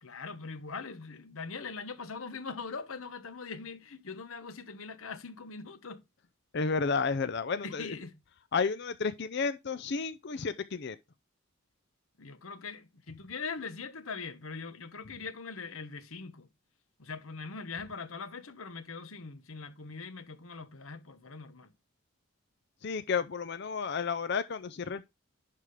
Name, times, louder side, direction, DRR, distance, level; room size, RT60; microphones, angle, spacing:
voice 1, 0.0-6.0 7.6-8.2 12.2-16.5 17.0-21.7, left 4 dB, 75° left, 1.1 m, -42 dB
voice 2, 6.5-8.0 8.5-11.0 22.8-25.1, left 5 dB, 55° left, 0.5 m, -32 dB
11.0 x 3.7 x 5.0 m
head